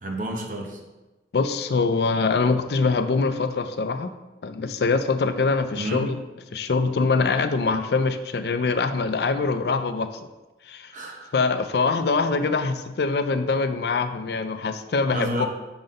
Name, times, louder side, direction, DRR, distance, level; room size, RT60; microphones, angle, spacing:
voice 1, 0.0-0.8 5.8-6.1 10.9-11.3 15.1-15.5, right 1 dB, 45° right, 1 dB, 0.9 m, -30 dB
voice 2, 1.3-4.1 4.4-6.2 6.5-10.1 10.7-10.9 11.3-15.5, left 4 dB, 65° left, 9 dB, 0.4 m, -23 dB
5.8 x 3.9 x 5.2 m, 1.1 s
head